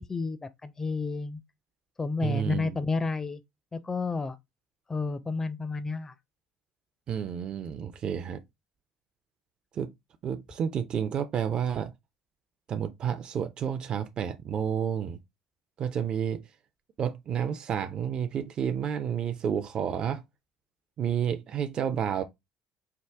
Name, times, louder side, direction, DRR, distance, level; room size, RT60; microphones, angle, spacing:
voice 1, 0.0-1.4 2.0-3.4 3.7-4.4 4.9-6.1, left 4 dB, 25° left, 0.4 m, -31 dB
voice 2, 2.2-2.8 7.1-8.4 9.7-9.9 10.2-11.9 12.7-15.2 15.8-16.4 17.0-20.2 21.0-22.2, right 8 dB, 45° right, 0.5 m, -30 dB
4.7 x 2.2 x 3.3 m
hypercardioid pair, 60°, 2 cm